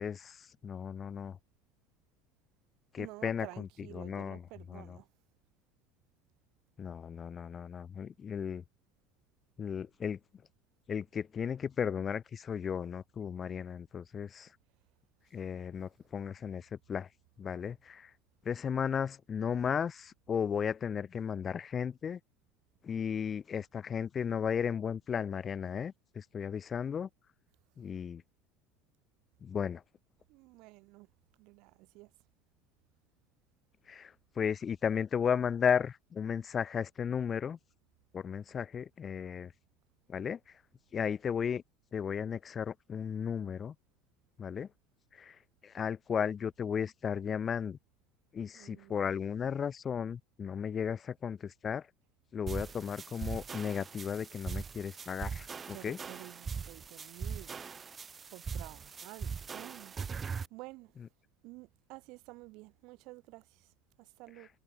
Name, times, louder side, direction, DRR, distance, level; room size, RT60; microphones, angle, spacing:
voice 1, 0.0-1.4 2.9-3.7 3.9-4.4 4.7-5.0 6.8-8.6 9.6-10.2 10.9-14.5 15.3-17.1 17.4-18.1 18.5-22.2 22.8-27.1 27.8-28.2 29.4-29.8 33.9-37.6 38.1-39.5 40.1-40.4 40.9-41.6 41.9-43.7 44.4-44.7 45.1-47.8 48.3-51.9 52.3-56.0, left 7 dB, 25° left, 0.3 m, -35 dB
voice 2, 3.0-5.1 30.3-31.1 31.4-32.1 48.5-49.1 55.7-57.6 58.3-61.0 61.4-64.5, right 23 dB, 55° right, 0.8 m, -51 dB
sound 1, 52.5-60.5, right 6 dB, 20° right, 0.8 m, -41 dB
cardioid pair, 160°, 0 cm